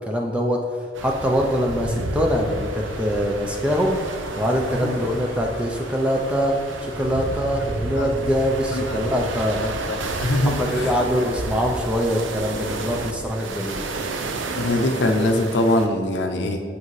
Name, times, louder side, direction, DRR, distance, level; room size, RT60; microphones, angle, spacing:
voice 1, 0.1-0.6 1.0-6.5 6.8-9.6 10.5-13.8, equal, 5° right, 0 dB, 0.5 m, -23 dB
sound 1, 0.9-15.9, right 2 dB, 90° right, 0.6 m, -31 dB
sound 2, 2.4-8.1, left 1 dB, 25° left, 1.1 m, -44 dB
voice 2, 9.5-10.9 14.6-16.6, left 1 dB, 70° left, 4 dB, 0.6 m, -23 dB
8.2 x 5.9 x 3.2 m, 2.2 s
head